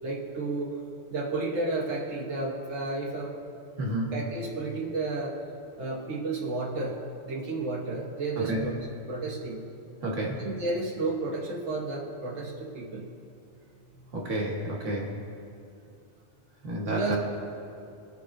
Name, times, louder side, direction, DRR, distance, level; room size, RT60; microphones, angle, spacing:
voice 1, 0.0-0.8 1.1-3.4 4.1-5.4 5.8-8.8 9.1-9.6 10.4-13.1 16.9-17.2, right 2 dB, 70° right, -3 dB, 1.3 m, -32 dB
voice 2, 3.8-4.1 8.5-8.6 10.0-10.4 14.1-15.1 16.6-17.2, right 1 dB, 85° right, -1 dB, 1.6 m, -30 dB
17.5 x 6.6 x 2.5 m, 2.6 s
omnidirectional pair, 1.2 m